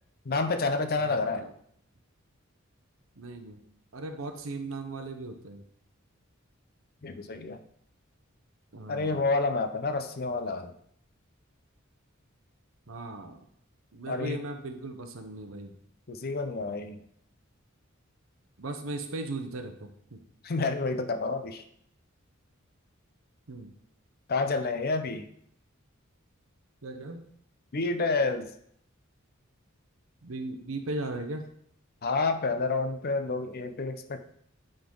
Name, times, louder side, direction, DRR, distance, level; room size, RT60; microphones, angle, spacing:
voice 1, 0.3-1.5 7.0-7.6 8.9-10.7 14.1-14.4 16.1-17.0 20.4-21.6 24.3-25.3 27.7-28.5 32.0-34.2, left 3 dB, 50° left, 8 dB, 0.6 m, -29 dB
voice 2, 1.0-1.5 3.2-3.6 3.9-5.6 8.7-9.2 12.9-13.4 13.9-15.8 18.6-20.2 23.5-23.7 26.8-27.2 30.2-31.5, right 2 dB, 75° right, 7 dB, 0.8 m, -37 dB
8.7 x 3.9 x 3.8 m, 0.69 s
head